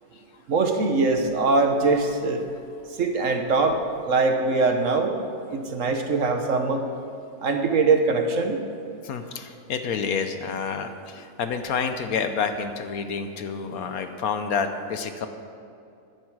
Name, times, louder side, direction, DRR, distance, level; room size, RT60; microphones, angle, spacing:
voice 1, 0.5-2.5 3.0-5.2 5.5-6.8 7.4-8.6, right 3 dB, 55° right, 5 dB, 1.2 m, -22 dB
voice 2, 9.0-15.3, left 6 dB, 65° left, 8 dB, 1.1 m, -29 dB
14.0 x 11.0 x 4.7 m, 2.5 s
omnidirectional pair, 1.8 m